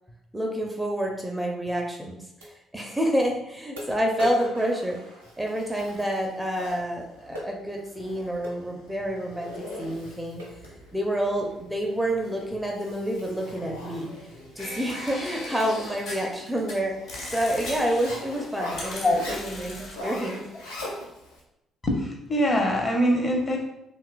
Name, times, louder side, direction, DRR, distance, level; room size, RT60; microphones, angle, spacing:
voice 1, 0.3-5.0 5.4-9.5 9.8-10.4 10.9-14.1 14.6-16.9 17.3-20.7, equal, 10° right, 0 dB, 0.4 m, -28 dB
sound 1, 1.4-1.5 2.4-2.5 3.2-3.3 3.8-5.7 7.4-7.6 8.4-8.6 9.4-9.6 10.0-10.1 10.4-10.7 11.3-11.5, equal, 80° right, 0.5 m, -38 dB
Zipper (clothing), 5.2-21.4, left 1 dB, 85° left, 0.5 m, -42 dB
sound 2, 14.6-16.7 17.1-21.0, left 1 dB, 55° left, 1.0 m, -39 dB
voice 2, 19.0-19.4 21.8-23.6, equal, 30° left, 1 dB, 0.6 m, -23 dB
2.8 x 2.2 x 2.3 m, 0.87 s
figure-of-eight pair, 45°, 0 cm